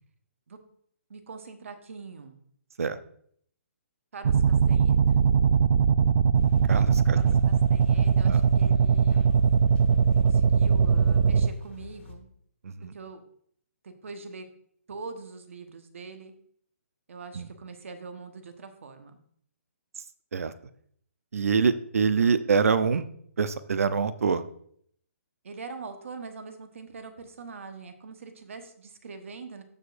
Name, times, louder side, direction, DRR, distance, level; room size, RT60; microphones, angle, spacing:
voice 1, 1.1-2.4 4.1-5.0 7.1-9.5 10.2-12.3 12.9-13.2 13.8-14.5 14.9-16.3 17.1-19.2 25.4-29.6, right 4 dB, 65° right, 7 dB, 1.2 m, -43 dB
sound 1, 4.2-11.5, right 6 dB, 45° right, 0.4 m, -21 dB
sound 2, 6.3-12.1, left 5 dB, 55° left, 1.5 m, -43 dB
voice 2, 6.7-7.2 8.2-8.4 12.6-12.9 17.3-17.5 20.3-20.5 21.3-23.0 23.4-24.4, right 5 dB, 80° right, 13 dB, 0.7 m, -25 dB
14.5 x 5.0 x 2.6 m, 0.63 s
hypercardioid pair, 170°, 8 cm